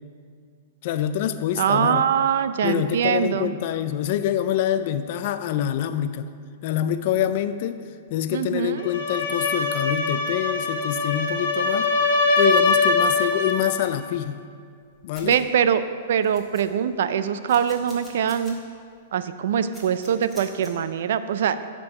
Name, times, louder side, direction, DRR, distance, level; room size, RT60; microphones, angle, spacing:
voice 1, 0.8-2.1 2.6-6.3 6.6-7.8 8.1-11.9 12.4-14.5 15.0-15.4, left 11 dB, 50° left, 11 dB, 0.3 m, -25 dB
voice 2, 1.6-3.5 8.3-8.8 15.2-15.8 16.1-18.6 19.1-21.7, right 8 dB, 70° right, 12 dB, 0.4 m, -23 dB
sound 1, 8.8-13.7, left 3 dB, 75° left, 0.9 m, -22 dB
sound 2, 13.8-14.0 14.8-14.9 15.1-15.4 15.9-16.0 16.2-16.9 17.5-18.5 18.9-19.0 19.7-20.7, equal, ahead, 1.6 m, -45 dB
9.6 x 3.8 x 5.9 m, 2.1 s
hypercardioid pair, 150°, 0 cm